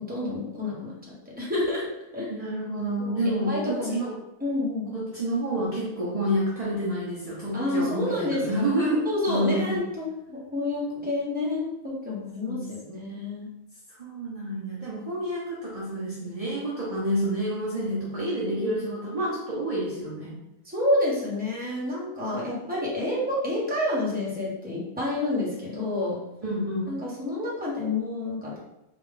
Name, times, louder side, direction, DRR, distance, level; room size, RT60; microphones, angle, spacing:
voice 1, 0.1-1.0 1.3-1.9 2.1-2.3 3.0-4.0 4.4-4.9 7.5-8.7 9.0-13.5 18.5-18.8 20.6-26.2 26.9-28.6, left 2 dB, 5° right, -6 dB, 1.0 m, -29 dB
voice 2, 2.3-4.1 4.9-9.8 12.4-13.2 13.9-20.4 26.4-26.9, right 1 dB, 35° right, -6 dB, 0.6 m, -29 dB
3.6 x 2.5 x 3.6 m, 0.89 s
omnidirectional pair, 1.5 m